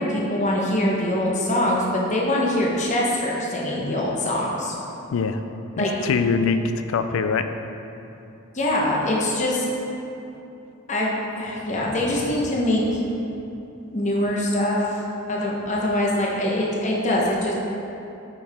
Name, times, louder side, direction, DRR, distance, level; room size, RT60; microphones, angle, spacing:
voice 1, 0.0-4.7 5.8-5.9 8.5-9.6 10.9-13.0 13.9-15.0 15.3-17.5, left 1 dB, 35° left, -3 dB, 0.9 m, -23 dB
voice 2, 5.1-5.4 5.8-7.5, left 5 dB, 70° left, 9 dB, 0.4 m, -23 dB
8.8 x 4.6 x 3.5 m, 2.9 s
head